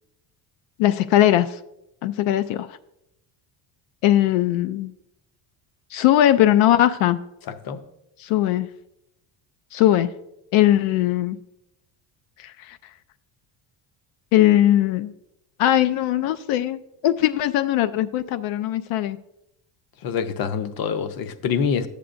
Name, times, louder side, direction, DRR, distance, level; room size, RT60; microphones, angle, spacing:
voice 1, 0.8-1.6 2.0-2.8 4.0-4.9 5.9-7.2 8.2-8.7 9.7-10.1 10.5-11.4 12.4-12.8 14.3-15.1 15.6-19.2, left 13 dB, 85° left, 0.5 m, -20 dB
voice 2, 20.0-21.9, left 6 dB, 50° left, 0.7 m, -25 dB
12.0 x 8.3 x 2.5 m
cardioid pair, 145°, 46 cm